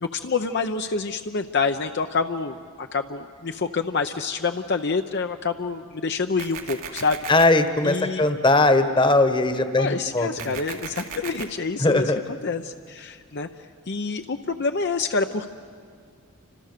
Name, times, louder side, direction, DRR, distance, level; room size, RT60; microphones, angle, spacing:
voice 1, 0.0-7.2 7.8-8.2 9.8-12.1 12.4-13.5 13.9-15.5, left 4 dB, 55° left, 6 dB, 0.7 m, -27 dB
sound 1, 6.4-7.4 10.4-11.4, right 7 dB, 80° right, 2.2 m, -35 dB
voice 2, 7.3-10.5 11.8-12.2, left 2 dB, 25° left, 9 dB, 1.2 m, -20 dB
29.0 x 26.0 x 6.7 m, 2.1 s
head